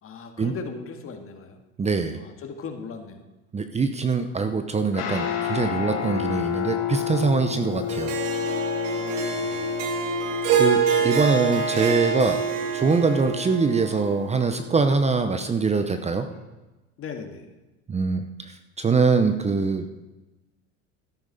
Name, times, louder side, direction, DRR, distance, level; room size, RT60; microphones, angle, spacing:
voice 1, 0.0-1.6 2.2-3.2 8.9-9.8 17.0-17.5, left 5 dB, 40° left, 5 dB, 1.9 m, -38 dB
voice 2, 1.8-2.2 3.5-8.1 10.6-12.4 12.7-16.3 17.9-19.8, right 4 dB, 20° right, 8 dB, 0.8 m, -23 dB
Guitar, 4.9-16.4, left 10 dB, 70° left, 3.8 m, -32 dB
Harp, 7.9-14.3, right 7 dB, 85° right, 2.0 m, -26 dB
13.0 x 11.0 x 4.2 m, 1.1 s
supercardioid pair, 95°, 34 cm